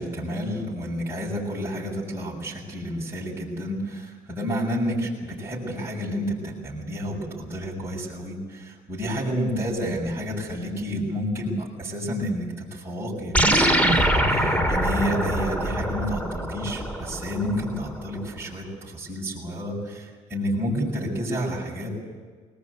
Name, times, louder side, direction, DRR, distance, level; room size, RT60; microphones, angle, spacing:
voice 1, 0.0-21.9, equal, 15° right, -7 dB, 6.6 m, -30 dB
sound 1, 13.3-18.0, equal, 10° left, 2.4 m, -23 dB
21.0 x 20.5 x 8.2 m, 1.5 s
cardioid pair, 110°, 17 cm